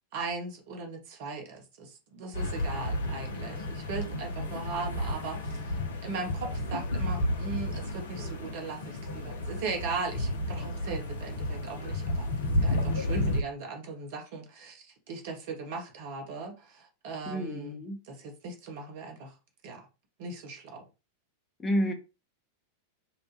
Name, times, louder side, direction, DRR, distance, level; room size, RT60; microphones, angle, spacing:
voice 1, 0.1-12.2 12.6-19.3 19.6-19.9 20.2-20.8, right 4 dB, 50° right, 0.8 m, -38 dB
sound 1, 2.3-13.4, left 1 dB, 60° left, 0.5 m, -32 dB
voice 2, 17.3-18.0 21.6-21.9, equal, 15° left, 0.6 m, -29 dB
2.8 x 2.1 x 2.9 m
figure-of-eight pair, 90°, 0 cm